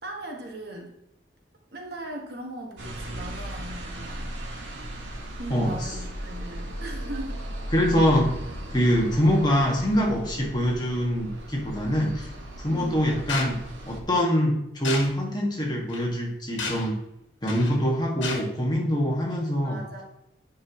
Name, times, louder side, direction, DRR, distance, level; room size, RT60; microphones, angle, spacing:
voice 1, 0.0-0.9 1.7-4.3 5.4-7.4 12.7-13.0 19.6-20.0, right 1 dB, 55° right, 1 dB, 1.5 m, -38 dB
sound 1, 2.8-14.0, right 1 dB, 90° right, 1.4 m, -37 dB
voice 2, 7.7-8.3 8.7-12.3 12.6-13.6 13.9-16.9 17.4-19.8, equal, 20° left, -2 dB, 1.7 m, -24 dB
sound 2, 13.3-13.5 14.8-15.1 15.9-16.0 16.6-16.9 17.5-17.8 18.2-18.4, left 4 dB, 85° left, 1.4 m, -31 dB
9.5 x 5.6 x 3.0 m, 0.81 s
head